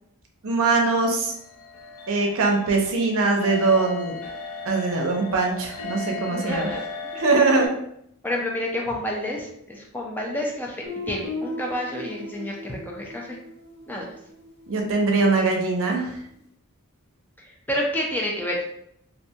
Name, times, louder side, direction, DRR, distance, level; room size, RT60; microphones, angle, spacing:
voice 1, 0.4-1.3 2.1-4.2 4.7-6.7 7.1-7.7 14.7-16.2, right 3 dB, 65° right, 1 dB, 0.6 m, -22 dB
sound 1, 1.3-7.7, left 4 dB, 75° left, 0.5 m, -37 dB
voice 2, 6.3-6.8 8.2-13.4 13.9-14.1 17.4-18.6, left 1 dB, 10° left, -2 dB, 0.4 m, -29 dB
Guitar, 10.8-15.5, left 2 dB, 55° left, 1.3 m, -38 dB
2.5 x 2.2 x 2.7 m, 0.72 s
head